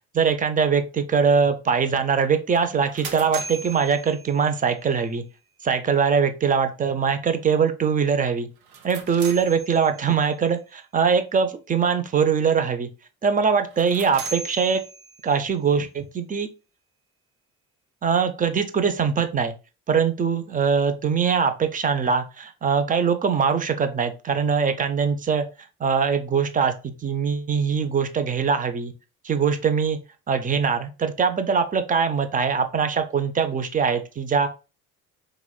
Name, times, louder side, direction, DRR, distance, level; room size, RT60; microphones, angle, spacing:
voice 1, 0.1-5.2 5.6-8.5 8.8-12.9 13.2-14.8 15.2-16.5 18.0-19.5 19.9-25.5 25.8-28.9 29.2-30.0 30.3-34.5, right 6 dB, 20° right, 8 dB, 0.5 m, -22 dB
sound 1, 2.5-4.8 8.6-10.2 13.6-15.4, right 4 dB, 70° right, 0.7 m, -38 dB
3.8 x 2.9 x 2.2 m, 0.30 s
figure-of-eight pair, 50°, 44 cm